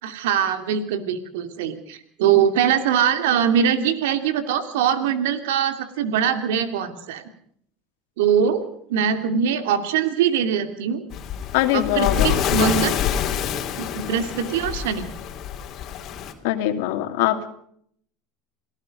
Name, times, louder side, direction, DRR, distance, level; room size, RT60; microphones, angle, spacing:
voice 1, 0.0-7.2 8.2-11.0 11.7-12.9 13.8-15.1, right 8 dB, 90° right, 9 dB, 2.8 m, -22 dB
Waves surf, 11.1-16.3, left 9 dB, 45° left, 3.4 m, -26 dB
voice 2, 11.5-12.3 16.4-17.5, left 13 dB, 80° left, 7 dB, 2.7 m, -22 dB
27.5 x 18.0 x 5.4 m, 0.65 s
supercardioid pair, 115°, 0 cm